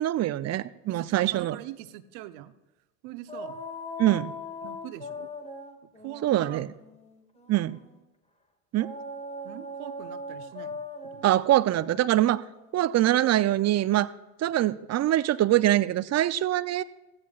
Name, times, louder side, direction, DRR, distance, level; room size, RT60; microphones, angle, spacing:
voice 1, 0.0-1.6 4.0-4.3 6.2-6.7 7.5-7.8 8.7-8.9 11.2-12.4 12.7-14.1 14.4-16.8, right 14 dB, 35° right, 16 dB, 0.5 m, -24 dB
voice 2, 0.9-2.5 3.0-3.6 4.6-5.3 5.8-6.6 9.4-11.3, right 14 dB, 65° right, 12 dB, 0.9 m, -43 dB
sound 1, 3.3-7.9 8.8-13.5, left 2 dB, 15° left, 1.6 m, -41 dB
16.0 x 15.0 x 2.4 m, 1.0 s
hypercardioid pair, 70°, 47 cm